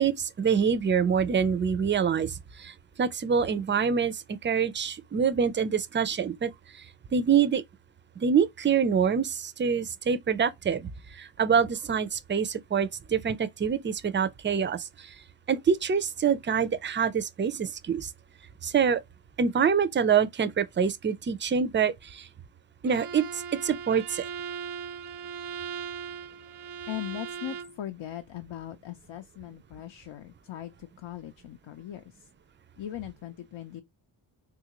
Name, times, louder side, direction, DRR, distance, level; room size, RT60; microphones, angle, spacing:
voice 1, 0.0-6.9 7.1-7.6 8.2-15.2 15.5-18.1 18.6-19.0 19.4-22.3 22.8-24.2, right 7 dB, 25° right, 0.3 m, -26 dB
Bowed string instrument, 22.9-27.8, right 7 dB, 85° right, 0.6 m, -38 dB
voice 2, 26.9-32.3 32.8-33.8, left 12 dB, 65° left, 0.6 m, -39 dB
3.6 x 2.5 x 2.9 m
wide cardioid pair, 75°, 49 cm